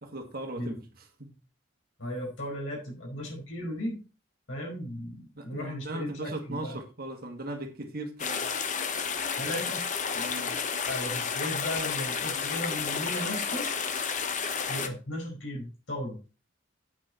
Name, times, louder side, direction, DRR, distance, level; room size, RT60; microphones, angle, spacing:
voice 1, 0.0-1.3 5.4-8.5 10.1-10.5, right 2 dB, 50° right, 2.0 m, -38 dB
voice 2, 2.0-4.0 4.5-6.8 9.4-9.9 10.9-13.7 14.7-16.2, left 1 dB, 70° left, 5.1 m, -36 dB
sound 1, 8.2-14.9, left 6 dB, 40° left, 1.0 m, -31 dB
8.8 x 7.6 x 4.4 m
head